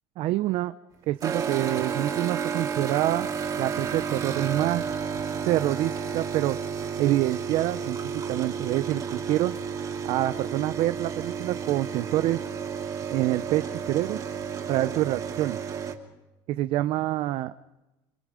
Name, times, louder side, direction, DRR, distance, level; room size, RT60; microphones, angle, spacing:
voice 1, 0.2-0.7 1.1-3.3 3.6-4.8 5.4-6.6 7.0-9.5 10.0-12.4 13.1-14.2 14.7-15.6 16.5-17.5, right 15 dB, 60° right, 12 dB, 0.7 m, -26 dB
sound 1, 1.2-15.9, right 6 dB, 35° right, 2.8 m, -32 dB
28.0 x 22.5 x 5.1 m, 1.0 s
cardioid pair, 125°, 11 cm